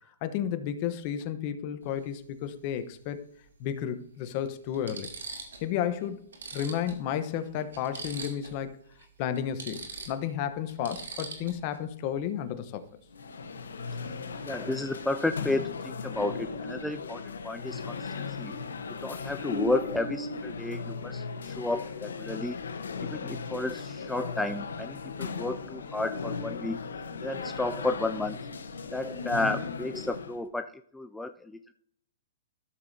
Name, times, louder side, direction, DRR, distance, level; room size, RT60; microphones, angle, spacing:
voice 1, 0.2-3.3 3.6-5.1 5.6-6.3 6.5-8.7 9.2-12.8, left 9 dB, 40° left, 10 dB, 0.9 m, -32 dB
sound 1, 1.8-2.0 3.5-3.6 4.2-4.3 4.7-5.7 6.0-6.1 6.3-8.6 8.9-9.1 9.4-11.8 14.4-14.6 14.9-15.3, right 4 dB, 90° right, 2.6 m, -42 dB
sound 2, 13.1-30.4, left 4 dB, 90° left, 1.0 m, -37 dB
voice 2, 14.5-18.5 19.0-22.6 23.1-26.8 27.2-28.4 28.9-31.7, left 2 dB, 5° left, 7 dB, 0.3 m, -32 dB
14.0 x 7.1 x 2.8 m, 0.66 s
hypercardioid pair, 140°, 0 cm